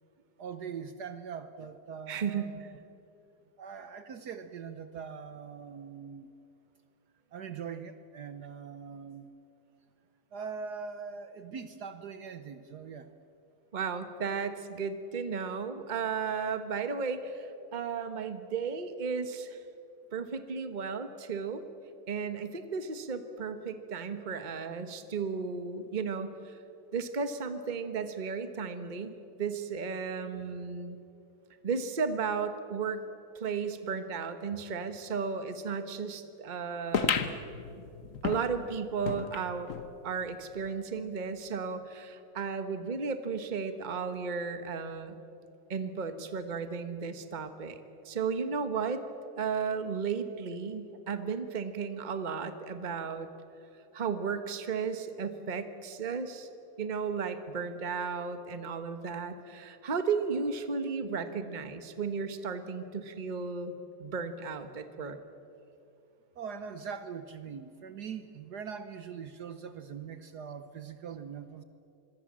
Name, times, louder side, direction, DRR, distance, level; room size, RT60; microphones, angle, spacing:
voice 1, 0.4-2.7 3.6-6.3 7.3-9.3 10.3-13.1 66.3-71.6, right 6 dB, 60° right, 10 dB, 1.4 m, -42 dB
voice 2, 2.1-2.7 13.7-19.6 20.1-21.6 22.1-26.6 26.9-29.1 29.4-31.0 31.6-33.0 33.3-37.4 38.2-39.7 40.0-45.2 45.7-47.8 48.0-49.0 49.4-53.3 53.9-56.5 56.8-63.7 64.0-65.2, right 5 dB, 25° right, 9 dB, 1.2 m, -34 dB
sound 1, 36.9-39.9 40.3-40.4 40.6-40.7 41.5-41.6, left 7 dB, 50° left, 1.3 m, -33 dB
26.0 x 22.5 x 7.5 m, 2.7 s
omnidirectional pair, 2.1 m